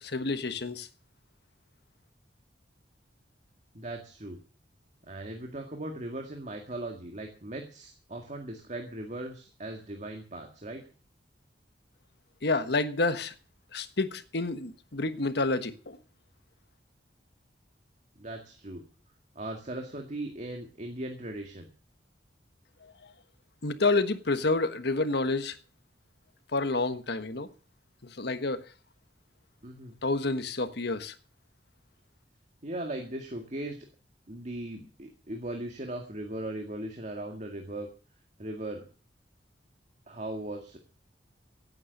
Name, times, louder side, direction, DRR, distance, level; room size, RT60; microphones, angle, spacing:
voice 1, 0.0-0.9 12.4-13.3 13.7-16.0 23.6-25.6 26.5-27.5 28.2-28.6 30.0-31.1, left 3 dB, 65° left, 1.3 m, -29 dB
voice 2, 3.7-4.4 5.0-10.8 18.2-18.8 19.4-21.7 29.6-30.0 32.6-33.8 34.3-37.9 38.4-38.9 40.1-40.8, right 1 dB, 40° right, 2.0 m, -38 dB
16.5 x 8.9 x 6.6 m
head